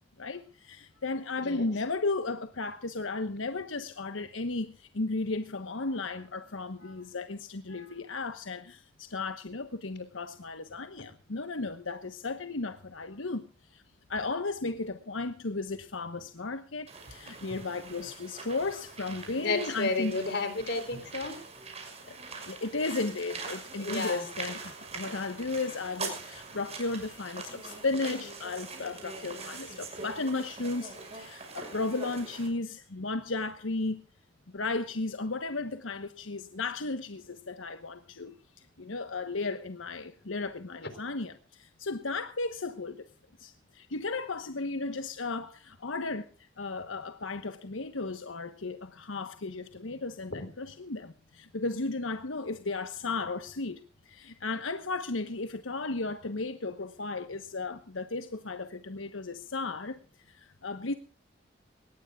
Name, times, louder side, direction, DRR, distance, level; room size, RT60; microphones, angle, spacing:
voice 1, 0.2-13.4 13.7-13.8 14.1-20.2 22.0-22.2 22.5-34.0 34.5-43.0 43.4-60.0 60.2-60.9, left 3 dB, 85° left, 1.1 m, -35 dB
sound 1, 16.9-32.5, right 4 dB, 35° right, 6.0 m, -43 dB
voice 2, 19.4-21.3 23.8-24.2 50.3-50.4, left 3 dB, 60° left, 3.8 m, -31 dB
22.0 x 19.5 x 2.4 m
head